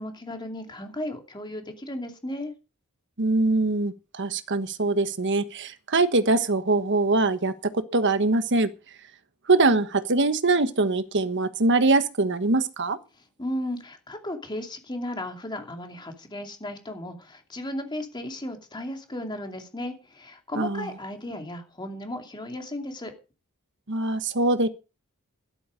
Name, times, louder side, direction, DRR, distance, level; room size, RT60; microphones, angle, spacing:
voice 1, 0.0-2.5 13.4-23.1, left 1 dB, 20° left, 2.6 m, -35 dB
voice 2, 3.2-8.7 9.5-13.0 20.6-20.9 23.9-24.7, right 3 dB, 55° right, 1.3 m, -23 dB
12.5 x 11.5 x 5.1 m
head